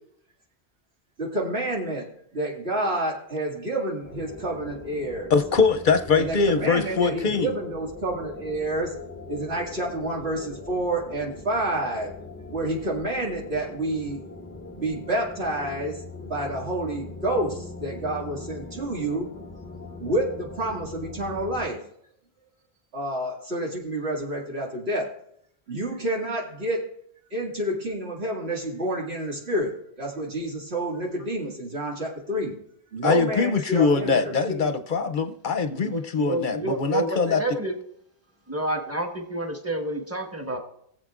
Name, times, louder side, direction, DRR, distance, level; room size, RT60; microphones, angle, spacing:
voice 1, 1.2-2.1 2.3-5.3 6.2-8.9 9.3-12.1 12.5-14.2 14.7-19.3 20.0-21.8 22.9-25.1 25.7-26.8 27.3-32.5 32.9-34.7, right 1 dB, 85° right, -2 dB, 2.5 m, -29 dB
sound 1, 4.0-21.7, left 3 dB, 15° left, 0.4 m, -41 dB
voice 2, 5.3-7.5 33.0-37.4, left 5 dB, 55° left, 9 dB, 0.7 m, -23 dB
voice 3, 35.7-37.7 38.5-40.6, right 1 dB, 15° right, 2 dB, 1.4 m, -29 dB
21.0 x 7.4 x 2.4 m, 0.70 s
omnidirectional pair, 1.0 m